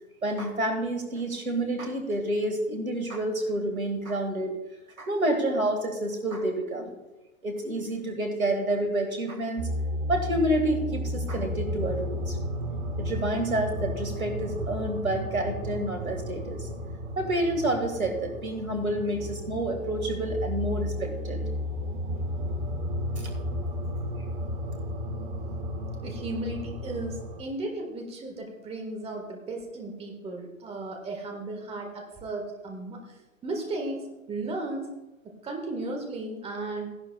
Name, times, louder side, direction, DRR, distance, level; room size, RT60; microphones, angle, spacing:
voice 1, 0.2-4.5 5.0-6.9 7.4-9.7 10.1-12.4 13.0-16.7 17.2-21.4 23.2-23.3, right 1 dB, 85° right, 5 dB, 2.0 m, -29 dB
sound 1, 9.6-27.4, equal, 55° right, 1.5 m, -33 dB
voice 2, 26.0-33.0 33.4-34.9 35.2-37.0, right 2 dB, 15° right, 2 dB, 1.6 m, -35 dB
15.5 x 11.0 x 2.3 m, 1.1 s
figure-of-eight pair, 110°, 41 cm